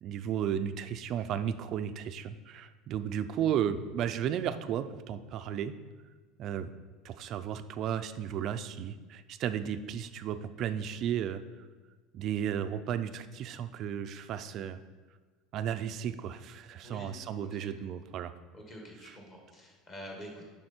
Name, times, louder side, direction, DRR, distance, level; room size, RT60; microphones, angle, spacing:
voice 1, 0.0-5.7 6.4-6.7 7.0-11.4 12.1-14.8 15.5-18.3 19.1-19.2, right 9 dB, 40° right, 11 dB, 0.4 m, -34 dB
voice 2, 18.5-20.5, equal, 25° left, 0 dB, 1.6 m, -46 dB
7.7 x 5.6 x 4.4 m, 1.3 s
cardioid pair, 160°, 0 cm